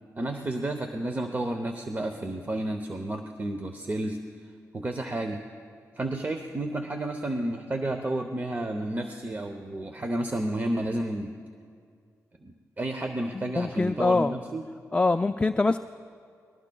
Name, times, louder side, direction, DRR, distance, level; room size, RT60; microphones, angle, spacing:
voice 1, 0.2-4.2 4.7-5.4 6.0-11.3 12.4-14.6, right 1 dB, 30° right, 6 dB, 0.8 m, -31 dB
voice 2, 13.3-14.4 14.9-15.8, left 3 dB, 20° left, 8 dB, 0.3 m, -24 dB
22.0 x 19.5 x 2.3 m, 2.3 s
cardioid pair, 70°, 6 cm